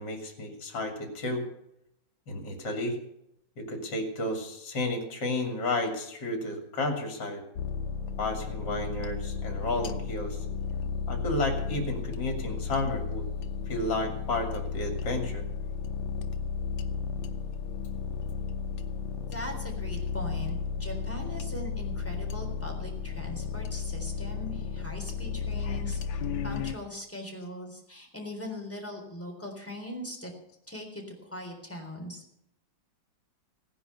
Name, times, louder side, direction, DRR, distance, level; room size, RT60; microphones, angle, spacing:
voice 1, 0.0-1.5 2.3-3.0 3.6-7.4 8.2-10.4 11.1-13.3 13.7-15.4, left 2 dB, 65° left, 4 dB, 3.1 m, -32 dB
sound 1, 7.6-26.7, left 6 dB, 85° left, 1.7 m, -34 dB
voice 2, 19.3-30.3 30.7-32.4, left 1 dB, 5° left, 1 dB, 3.7 m, -40 dB
17.0 x 10.0 x 6.7 m, 0.79 s
omnidirectional pair, 2.1 m